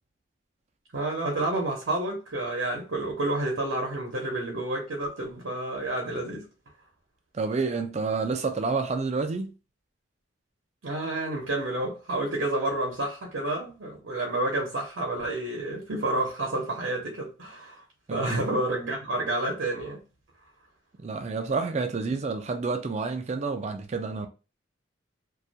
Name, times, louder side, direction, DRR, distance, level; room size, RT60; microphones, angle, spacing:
voice 1, 0.9-6.5 10.8-17.8 18.1-20.0, right 2 dB, 65° right, 0.6 m, -29 dB
voice 2, 7.3-9.5 18.1-18.4 21.0-24.3, right 4 dB, 35° right, 0.3 m, -29 dB
2.3 x 2.1 x 2.7 m
head